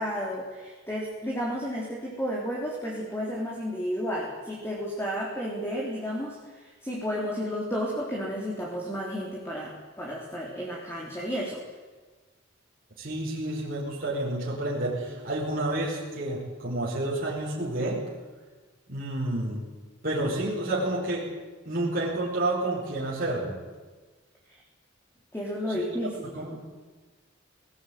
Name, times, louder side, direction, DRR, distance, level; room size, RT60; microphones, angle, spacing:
voice 1, 0.0-6.4 6.8-11.6 25.3-26.3, equal, 10° left, -3 dB, 3.9 m, -32 dB
voice 2, 13.0-18.0 18.9-19.6 20.0-21.3 21.6-23.6 25.7-25.8 26.3-26.6, right 1 dB, 45° right, -5 dB, 4.9 m, -29 dB
20.0 x 19.5 x 9.4 m, 1.3 s
head